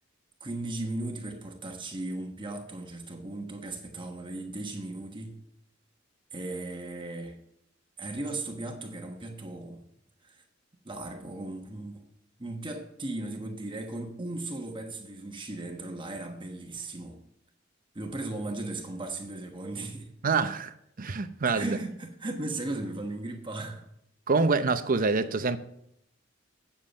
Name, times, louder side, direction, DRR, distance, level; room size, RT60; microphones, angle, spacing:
voice 1, 0.4-5.4 6.3-7.4 8.0-9.8 10.2-10.4 10.8-12.1 12.4-17.2 17.9-20.1 21.5-23.8, right 2 dB, 25° right, 1.2 m, -37 dB
voice 2, 20.2-21.8 24.3-25.6, right 4 dB, 45° right, 0.7 m, -26 dB
8.6 x 7.5 x 6.4 m
head